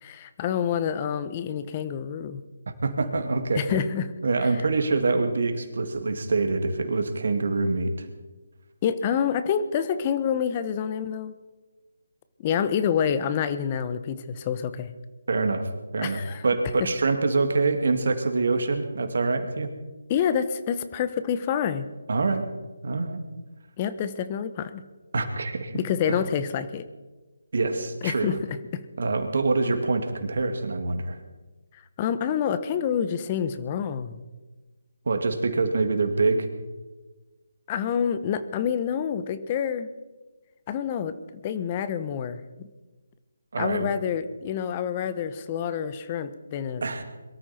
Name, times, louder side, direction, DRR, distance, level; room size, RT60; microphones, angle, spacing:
voice 1, 0.0-2.4 3.5-4.1 8.8-11.3 12.4-14.9 16.0-16.4 20.1-21.9 23.8-24.8 25.7-26.8 28.0-28.8 32.0-34.2 37.7-39.9 40.7-41.2 41.4-42.7 43.6-46.8, left 8 dB, 30° left, 12 dB, 1.1 m, -27 dB
voice 2, 2.7-3.9 4.2-8.1 15.3-19.7 22.1-22.4 22.8-23.2 25.1-25.8 26.1-26.2 27.5-28.3 29.0-31.2 35.1-36.5 43.5-43.9 46.8-47.0, right 3 dB, 65° right, 7 dB, 2.5 m, -25 dB
23.0 x 13.5 x 4.5 m, 1.2 s
figure-of-eight pair, 155°, 0 cm